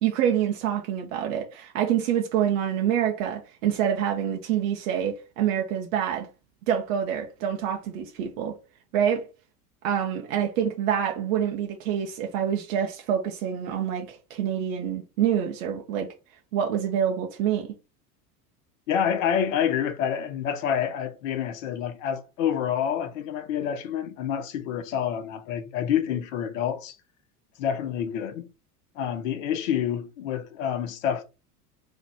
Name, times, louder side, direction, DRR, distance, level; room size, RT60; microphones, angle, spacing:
voice 1, 0.0-6.3 6.7-8.6 8.9-9.3 9.8-16.1 16.5-17.7, right 9 dB, 55° right, 1.0 m, -26 dB
voice 2, 18.9-27.0 27.6-28.5 28.9-31.2, left 9 dB, 55° left, 1.0 m, -28 dB
4.0 x 3.0 x 3.5 m
figure-of-eight pair, 75°, 46 cm